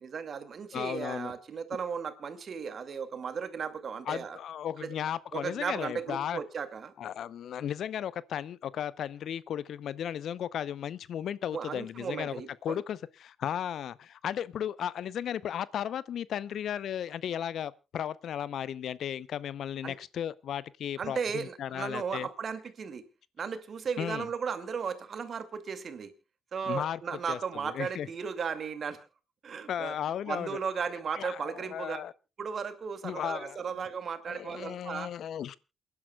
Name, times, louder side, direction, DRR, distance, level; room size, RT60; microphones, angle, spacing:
voice 1, 0.0-4.4 4.8-4.9 5.3-6.9 11.5-12.8 19.8-19.9 21.0-23.0 23.4-26.1 26.5-29.1 29.4-30.0 30.3-32.0 32.4-35.1, right 6 dB, 55° right, 2.3 m, -35 dB
voice 2, 0.7-1.3 4.1-6.4 7.0-12.4 12.6-22.3 24.0-24.3 26.7-27.0 27.3-27.4 27.6-28.1 29.7-30.6 31.2-32.1 33.0-33.6 34.3-35.6, left 9 dB, 65° left, 0.6 m, -35 dB
28.5 x 10.5 x 2.3 m
hypercardioid pair, 50°, 0 cm